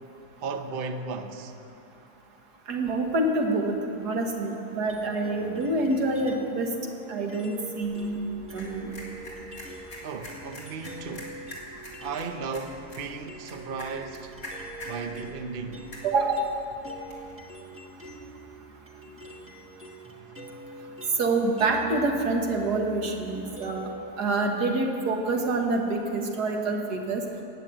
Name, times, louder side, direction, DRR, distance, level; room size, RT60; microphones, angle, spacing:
voice 1, 0.4-1.5 10.0-11.4 12.0-14.4 14.8-15.8, right 4 dB, 45° right, 0.8 m, -35 dB
voice 2, 2.7-6.7 7.1-8.2 8.5-8.9 16.0-16.5 21.2-23.9 24.2-27.2, right 2 dB, 90° right, 2.0 m, -26 dB
sound 1, 4.9-6.6 7.3-12.4 12.7-24.1, right 2 dB, 10° right, 1.2 m, -45 dB
sound 2, 7.8-17.3, left 1 dB, 50° left, 3.5 m, -45 dB
14.5 x 9.3 x 8.9 m
omnidirectional pair, 1.7 m